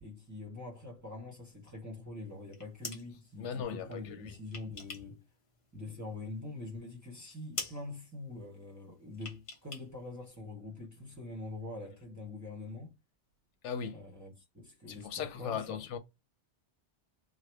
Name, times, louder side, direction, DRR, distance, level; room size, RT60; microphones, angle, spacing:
voice 1, 0.0-5.2 5.7-12.9 13.9-15.8, left 2 dB, 15° right, 0.8 m, -44 dB
sound 1, 2.4-3.1 4.1-5.2 5.5-6.4 6.7-6.8 7.1-7.3 7.5-7.8 9.1-9.9 10.1-10.2, left 4 dB, 40° left, 0.5 m, -43 dB
voice 2, 3.4-4.3 13.6-14.0 14.9-16.0, left 7 dB, 90° left, 0.9 m, -38 dB
3.1 x 2.1 x 3.3 m
omnidirectional pair, 1.2 m